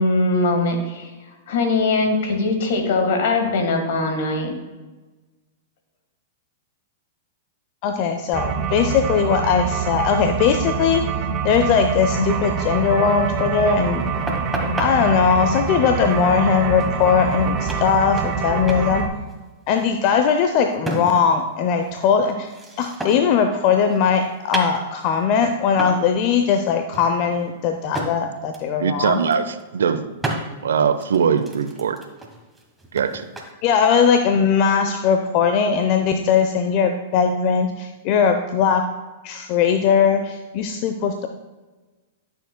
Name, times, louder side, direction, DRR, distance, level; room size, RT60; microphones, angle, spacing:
voice 1, 0.0-4.5 12.2-12.3, left 3 dB, 65° left, 4 dB, 1.5 m, -21 dB
voice 2, 7.8-11.0 11.4-14.0 14.8-19.0 19.7-22.5 22.8-29.2 33.6-38.8 39.2-41.3, left 6 dB, 45° left, 6 dB, 0.6 m, -19 dB
sound 1, 8.3-19.1, right 5 dB, 30° right, 0.9 m, -25 dB
sound 2, 14.3-14.9 17.0-17.1 17.3-17.4 17.7-18.4 18.7-18.9 19.2-21.4 21.7-23.4 23.7-25.2 25.8-26.1 26.4-26.6 26.9-28.1 28.5-28.7 29.1-29.6 30.2-30.4 31.0-33.5, right 1 dB, 10° right, 1.3 m, -32 dB
voice 3, 28.8-30.4 30.6-32.0 32.9-33.2, right 6 dB, 80° right, 11 dB, 0.5 m, -21 dB
12.0 x 6.5 x 2.2 m, 1.2 s
hypercardioid pair, 110°, 0 cm